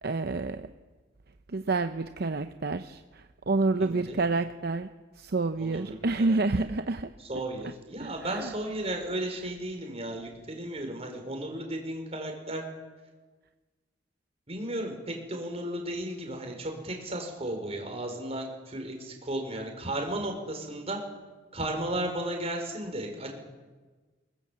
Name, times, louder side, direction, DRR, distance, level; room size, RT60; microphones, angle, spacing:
voice 1, 0.0-0.7 1.5-4.9 5.2-7.1 8.0-8.5, right 3 dB, 60° right, 9 dB, 0.7 m, -29 dB
voice 2, 3.8-4.2 5.6-6.4 7.2-12.6 14.5-21.0 21.5-23.3, right 1 dB, 35° right, 3 dB, 4.8 m, -34 dB
22.5 x 20.5 x 7.5 m, 1.4 s
head